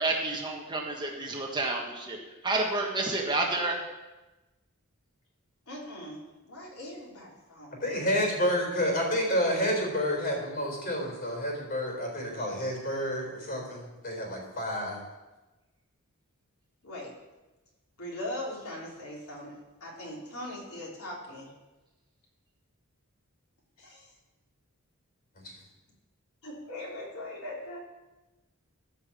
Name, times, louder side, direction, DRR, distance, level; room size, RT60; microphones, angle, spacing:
voice 1, 0.0-2.2 2.4-3.8, right 2 dB, 20° right, -1 dB, 1.4 m, -29 dB
voice 2, 5.7-6.2 6.5-7.8 16.8-17.1 18.0-21.5 23.8-24.1 26.4-27.8, left 1 dB, 75° left, -3 dB, 3.5 m, -40 dB
voice 3, 7.8-15.0 25.4-25.5, equal, 40° left, 0 dB, 4.1 m, -29 dB
14.5 x 5.8 x 7.1 m, 1.1 s
head